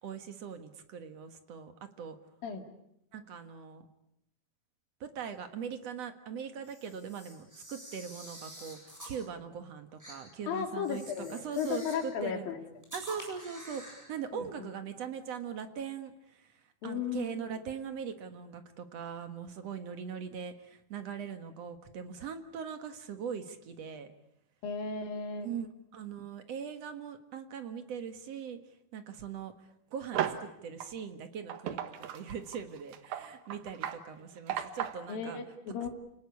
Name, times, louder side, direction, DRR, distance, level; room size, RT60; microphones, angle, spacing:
voice 1, 0.0-2.2 3.1-3.9 5.0-12.5 12.9-24.1 25.4-25.7 25.9-31.8 32.1-35.4, right 7 dB, 55° right, 8 dB, 2.3 m, -41 dB
Camera, 6.6-9.2 10.0-10.2 10.8-12.1 12.8-14.1, equal, 5° right, 7.8 m, -48 dB
voice 2, 10.5-12.6 14.3-14.7 16.8-17.5 24.6-25.5 35.1-35.9, left 7 dB, 75° left, 5 dB, 4.2 m, -35 dB
sound 1, 30.1-30.5 30.8-30.9 31.5-35.1, right 10 dB, 85° right, 3.2 m, -35 dB
29.5 x 19.5 x 8.4 m, 0.77 s
omnidirectional pair, 4.1 m